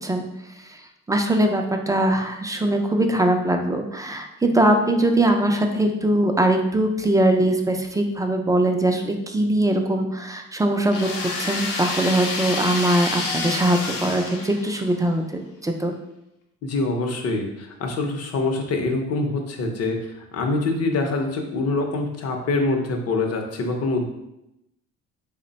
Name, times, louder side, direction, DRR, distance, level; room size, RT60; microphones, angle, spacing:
voice 1, 1.1-11.1 11.4-15.9, right 1 dB, 10° right, 4 dB, 0.3 m, -21 dB
sound 1, 10.9-15.0, left 3 dB, 90° left, 0.7 m, -29 dB
voice 2, 16.6-24.1, left 2 dB, 55° left, 3 dB, 0.7 m, -25 dB
3.2 x 2.1 x 3.9 m, 0.86 s
cardioid pair, 90°, 30 cm